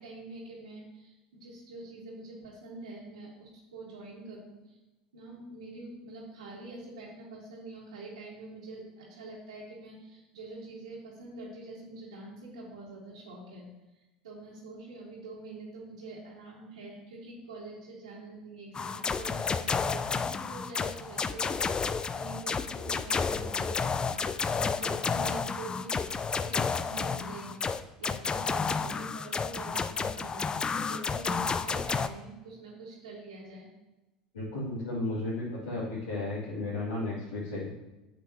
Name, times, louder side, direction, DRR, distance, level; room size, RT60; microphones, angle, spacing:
voice 1, 0.0-4.8 5.1-13.7 13.9-27.7 28.0-33.7, right 2 dB, 80° right, -7 dB, 1.8 m, -45 dB
sound 1, 18.7-32.1, left 5 dB, 25° left, 0.4 m, -31 dB
voice 2, 34.3-37.7, left 2 dB, 85° left, -12 dB, 3.2 m, -34 dB
8.8 x 7.6 x 3.1 m, 1.0 s
hypercardioid pair, 75°, 4 cm